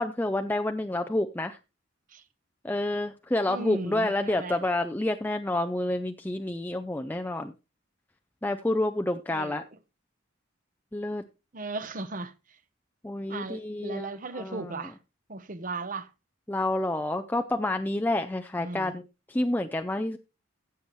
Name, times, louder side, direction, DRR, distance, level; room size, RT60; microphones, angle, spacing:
voice 1, 0.0-1.6 2.6-7.5 8.4-9.6 10.9-11.2 13.0-14.1 14.3-14.8 16.5-19.0 19.3-20.2, left 1 dB, 10° left, 0.4 m, -29 dB
voice 2, 3.5-4.6 9.3-9.7 11.5-12.6 13.3-15.0 15.3-16.1 18.6-18.9, right 3 dB, 40° right, 0.9 m, -37 dB
15.0 x 7.6 x 3.1 m
head